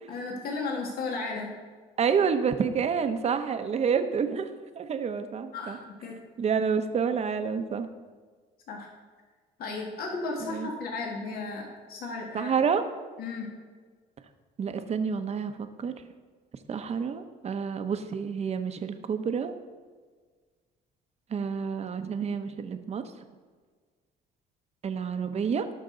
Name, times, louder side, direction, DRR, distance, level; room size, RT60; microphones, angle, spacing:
voice 1, 0.1-1.5 5.5-6.2 8.7-8.9 9.6-12.5 13.2-13.5, left 3 dB, 60° left, 0 dB, 1.9 m, -34 dB
voice 2, 2.0-4.5 4.8-5.8 6.4-7.9 10.4-10.7 12.3-12.8 14.6-15.9 16.7-19.5 21.3-23.1 24.8-25.7, right 6 dB, 40° right, 8 dB, 0.9 m, -28 dB
18.0 x 6.1 x 3.9 m, 1.5 s
cardioid pair, 110°, 17 cm